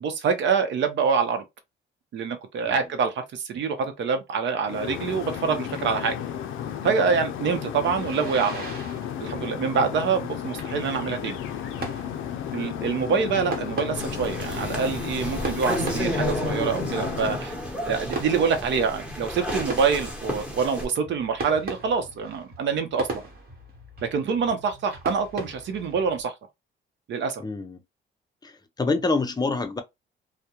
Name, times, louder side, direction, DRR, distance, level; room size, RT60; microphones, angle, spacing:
voice 1, 0.0-1.4 2.1-6.1 6.8-8.6 9.2-11.4 12.5-17.6 17.8-23.2 24.1-26.3 27.1-27.4, right 5 dB, 65° right, 0.7 m, -26 dB
sound 1, 4.7-17.4, left 9 dB, 80° left, 0.4 m, -33 dB
sound 2, 7.8-26.2, right 3 dB, 50° right, 1.1 m, -40 dB
sound 3, 13.9-20.9, left 1 dB, 5° right, 1.0 m, -31 dB
voice 2, 27.4-27.8 28.4-29.8, left 3 dB, 20° left, 0.5 m, -27 dB
2.3 x 2.1 x 2.8 m
cardioid pair, 90°, 20 cm